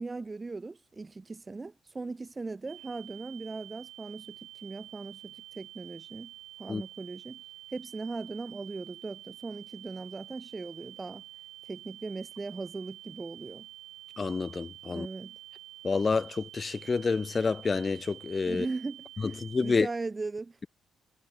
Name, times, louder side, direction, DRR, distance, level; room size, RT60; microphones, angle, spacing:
voice 1, 0.0-6.3 6.6-7.4 7.7-11.2 11.6-13.7 14.8-15.3 18.4-20.7, right 3 dB, 25° right, 1.0 m, -39 dB
sound 1, 2.7-19.8, right 14 dB, 85° right, 0.8 m, -49 dB
voice 2, 14.2-15.1 15.8-18.7 19.2-19.9, left 4 dB, 30° left, 0.7 m, -28 dB
cardioid pair, 90°, 0 cm